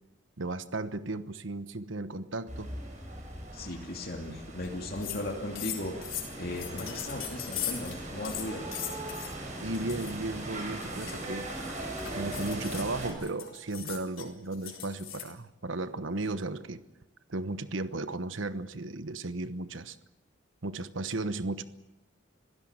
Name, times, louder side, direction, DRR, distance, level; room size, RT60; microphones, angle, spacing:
voice 1, 0.4-2.7 9.6-11.5 12.1-16.8 17.3-20.0 20.6-21.6, right 2 dB, 75° right, 12 dB, 1.2 m, -35 dB
sound 1, 2.5-13.1, right 1 dB, 40° right, 6.4 m, -40 dB
voice 2, 3.5-6.0 6.4-8.6, left 1 dB, 50° left, 1 dB, 2.7 m, -37 dB
sound 2, 4.6-4.7 5.0-5.2 5.6-9.3 9.7-10.1 10.6-15.3, left 11 dB, 90° left, 4.0 m, -39 dB
26.0 x 16.5 x 8.9 m, 0.98 s
head